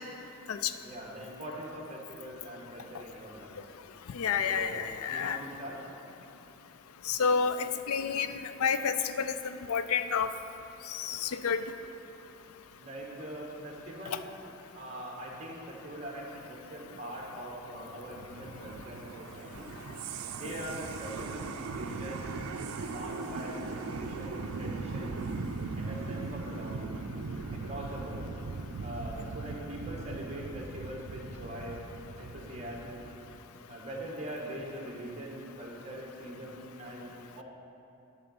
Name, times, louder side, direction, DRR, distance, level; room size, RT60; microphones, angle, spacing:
voice 1, 0.8-3.6 4.4-5.8 12.8-14.3 14.7-19.7 20.3-22.3 22.8-25.2 25.8-27.0 27.5-28.3 28.8-31.8 32.2-33.0 33.7-37.4, right 1 dB, 30° right, -2 dB, 1.4 m, -42 dB
voice 2, 4.2-5.4 7.1-8.3 8.6-9.3 9.7-10.3 10.9-11.6 20.4-20.5, left 6 dB, 85° left, 11 dB, 0.4 m, -29 dB
sound 1, 16.9-33.4, right 4 dB, 85° right, 0.4 m, -39 dB
11.0 x 3.9 x 7.0 m, 2.7 s
head